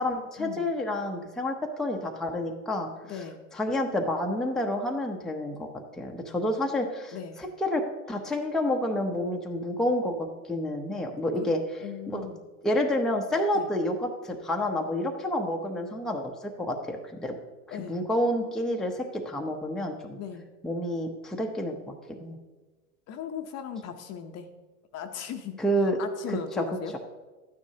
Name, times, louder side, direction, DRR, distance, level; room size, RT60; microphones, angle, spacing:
voice 1, 0.0-3.2 3.5-5.7 6.0-7.8 8.1-11.6 12.1-12.3 12.6-17.3 17.7-20.2 20.6-22.4 25.6-26.0 26.3-26.6, left 1 dB, ahead, 1 dB, 0.7 m, -29 dB
voice 2, 3.0-3.4 7.1-7.4 11.3-11.5 11.8-12.4 13.5-13.7 17.7-18.0 20.2-20.5 23.1-24.5 24.9-25.6 26.0-26.9, left 8 dB, 35° left, 7 dB, 0.8 m, -38 dB
12.0 x 9.5 x 2.8 m, 1.2 s
hypercardioid pair, 110°, 44 cm